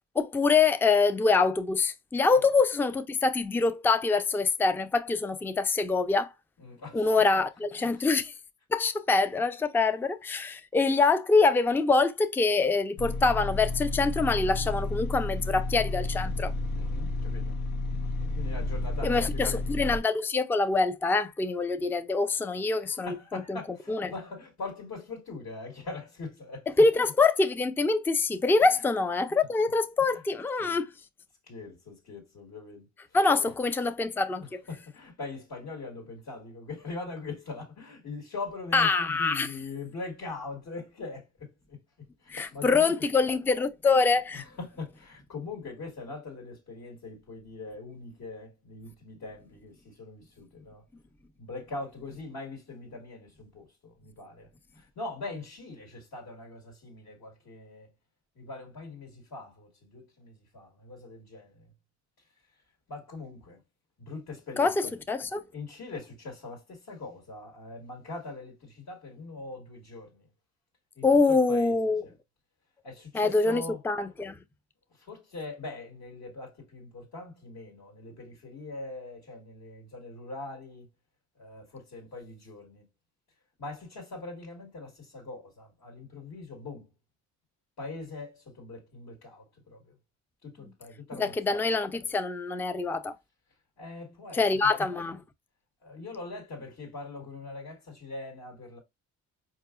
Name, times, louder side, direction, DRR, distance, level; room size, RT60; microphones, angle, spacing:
voice 1, 0.2-6.3 6.9-8.3 8.7-16.5 19.0-23.6 23.9-24.1 26.8-30.9 33.1-34.6 38.7-39.5 42.3-44.4 64.6-65.4 71.0-72.0 73.1-74.4 91.2-93.1 94.3-95.2, left 4 dB, 5° left, 0.3 m, -25 dB
voice 2, 6.6-7.4 7.8-8.1 16.7-17.6 18.4-19.6 22.7-26.7 28.6-28.8 30.0-30.2 30.6-30.8 31.5-32.9 34.7-41.8 42.2-42.9 44.3-50.8 51.4-57.9 58.3-61.6 62.9-63.6 64.0-64.9 65.5-70.3 70.9-71.8 72.0-72.1 72.8-73.8 74.9-80.9 81.4-82.9 83.6-86.9 87.8-89.9 90.4-91.3 93.8-94.9 95.8-98.8, left 3 dB, 65° left, 1.7 m, -42 dB
sound 1, 13.0-20.0, left 2 dB, 90° left, 0.9 m, -31 dB
4.7 x 2.8 x 2.4 m
cardioid pair, 90°, 30 cm